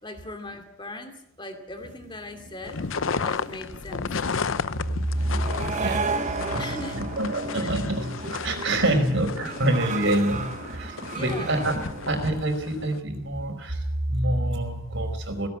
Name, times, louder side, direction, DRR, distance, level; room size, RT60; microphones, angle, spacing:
voice 1, 0.0-2.9 3.2-4.1 6.5-7.1 7.6-7.7 8.8-9.0 9.4-9.5 10.0-10.2 11.1-11.5, left 2 dB, 25° left, 6 dB, 2.6 m, -39 dB
sound 1, 1.8-12.2, right 4 dB, 40° right, 1.2 m, -35 dB
sound 2, 2.6-13.0, left 5 dB, 75° left, 0.7 m, -33 dB
voice 2, 5.1-15.5, right 1 dB, 65° right, 6 dB, 4.9 m, -27 dB
18.0 x 17.5 x 8.5 m, 0.72 s
head